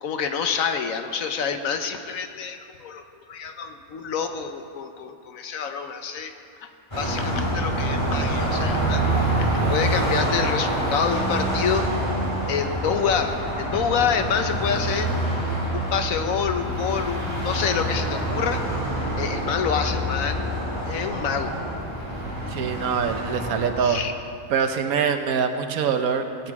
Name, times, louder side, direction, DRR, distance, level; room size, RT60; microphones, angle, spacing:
voice 1, 0.0-6.3 6.6-6.7 7.0-11.9 12.5-15.1 15.7-18.6 19.2-20.6 20.9-21.6 23.8-24.1, left 6 dB, 70° left, 7 dB, 1.2 m, -27 dB
Car passing by, 6.9-24.1, right 1 dB, 20° left, 2.2 m, -26 dB
voice 2, 22.5-24.0 24.5-26.5, right 6 dB, 75° right, 7 dB, 1.3 m, -24 dB
17.0 x 9.2 x 4.8 m, 2.4 s
omnidirectional pair, 1.5 m